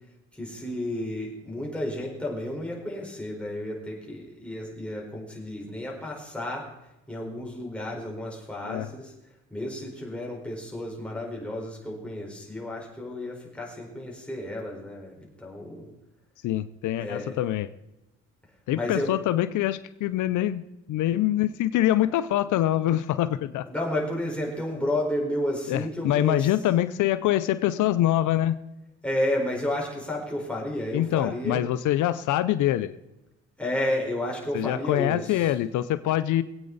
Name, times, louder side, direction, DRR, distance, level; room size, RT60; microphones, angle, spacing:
voice 1, 0.3-6.6 7.1-9.1 9.5-15.9 17.0-17.4 18.7-19.1 23.7-26.5 29.0-31.6 33.6-35.5, left 1 dB, 5° left, -3 dB, 4.5 m, -32 dB
voice 2, 16.4-17.7 18.7-20.6 20.9-23.7 25.7-28.6 30.9-32.9 34.5-36.4, left 13 dB, 80° left, 12 dB, 0.6 m, -24 dB
20.5 x 8.8 x 4.1 m, 0.92 s
cardioid pair, 90°, 30 cm